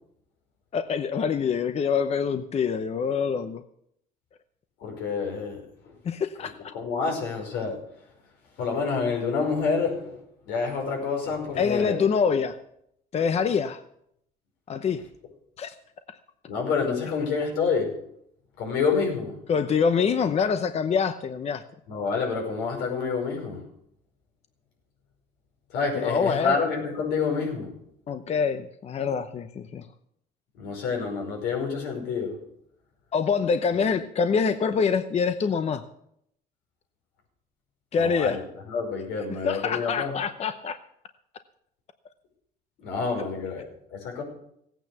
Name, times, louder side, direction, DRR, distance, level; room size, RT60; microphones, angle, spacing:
voice 1, 0.7-3.6 6.0-6.7 11.6-12.6 13.1-13.8 14.7-15.0 15.6-15.7 19.5-21.6 25.9-26.6 28.1-29.9 33.1-35.8 37.9-38.4 39.4-40.8, left 6 dB, 40° left, 10 dB, 0.8 m, -25 dB
voice 2, 4.8-5.9 6.7-7.8 8.6-10.2 10.5-12.0 16.5-18.0 18.6-19.4 21.9-23.6 25.7-27.8 30.5-32.4 38.0-40.1 42.8-44.2, left 5 dB, 90° left, 0 dB, 5.4 m, -28 dB
16.0 x 9.2 x 6.8 m, 0.73 s
cardioid pair, 110°, 17 cm